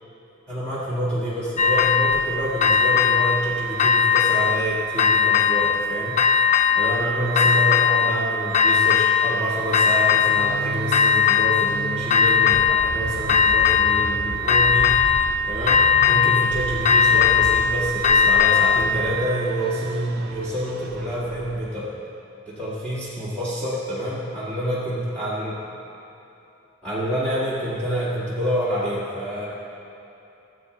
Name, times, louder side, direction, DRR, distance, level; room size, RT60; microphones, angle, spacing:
voice 1, 0.5-15.2 15.5-21.9 22.5-25.6 26.8-29.5, equal, 5° left, -11 dB, 1.7 m, -27 dB
sound 1, 1.6-2.3 2.6-3.5 3.8-4.6 5.0-5.8 6.2-7.0 7.3-8.2 8.5-9.4 9.7-10.6 10.9-11.8 12.1-13.0 13.3-14.1 14.5-15.3 15.7-16.5 16.8-18.9, left 6 dB, 35° left, 0.3 m, -18 dB
sound 2, 9.9-21.8, right 2 dB, 50° right, 0.6 m, -35 dB
14.5 x 7.8 x 3.2 m, 2.9 s
head